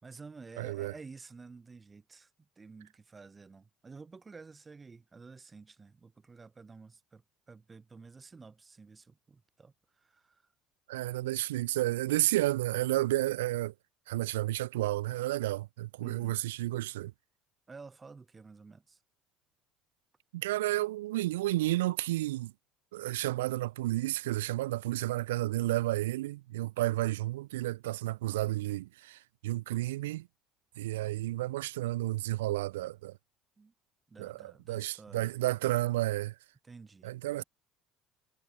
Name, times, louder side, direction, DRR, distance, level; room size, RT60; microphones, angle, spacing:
voice 1, 0.0-10.4 16.0-16.4 17.7-19.0 33.6-33.7 34.1-35.3 36.6-37.4, right 4 dB, 25° right, 3.6 m, -51 dB
voice 2, 0.6-0.9 10.9-13.7 14.1-17.1 20.3-22.5 22.9-30.3 30.8-33.2 34.2-36.3 37.0-37.4, right 17 dB, 90° right, 0.4 m, -31 dB
supercardioid pair, 80°, 0 cm